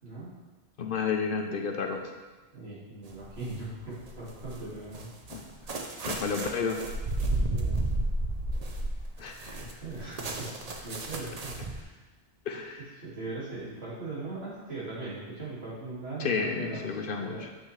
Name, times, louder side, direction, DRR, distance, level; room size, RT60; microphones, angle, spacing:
voice 1, 0.8-2.1 5.3-5.4 6.1-6.8 9.2-9.7 12.5-12.8 16.2-17.4, left 5 dB, 60° left, 4 dB, 0.7 m, -31 dB
voice 2, 2.5-5.1 7.3-7.8 9.6-10.5 10.8-12.0 13.0-16.8 17.2-17.4, right 2 dB, 70° right, -8 dB, 2.5 m, -39 dB
sound 1, 3.1-3.6 4.1-11.8, right 2 dB, 40° right, 0.7 m, -32 dB
7.5 x 5.7 x 3.2 m, 1.2 s
omnidirectional pair, 1.1 m